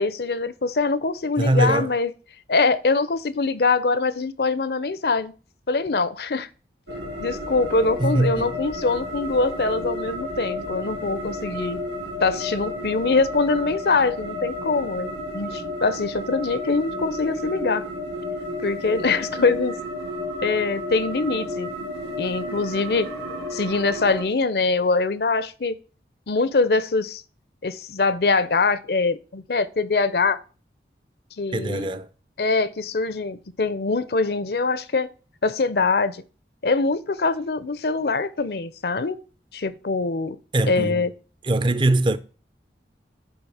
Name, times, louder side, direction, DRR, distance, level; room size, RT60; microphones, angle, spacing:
voice 1, 0.0-2.1 2.5-5.3 5.7-6.5 7.2-11.8 12.2-17.8 18.6-19.8 20.4-21.9 22.2-23.1 23.5-25.8 26.3-27.2 27.6-30.4 31.4-31.9 32.4-35.1 35.4-36.2 36.6-39.2 39.5-40.4 40.7-41.1, left 3 dB, 65° left, 0.6 m, -23 dB
voice 2, 1.4-1.9 8.0-8.6 31.5-32.1 40.5-41.1 41.4-42.2, right 2 dB, 25° right, 0.5 m, -22 dB
sound 1, 6.9-24.2, left 1 dB, 85° right, 2.0 m, -32 dB
10.0 x 3.6 x 6.3 m
head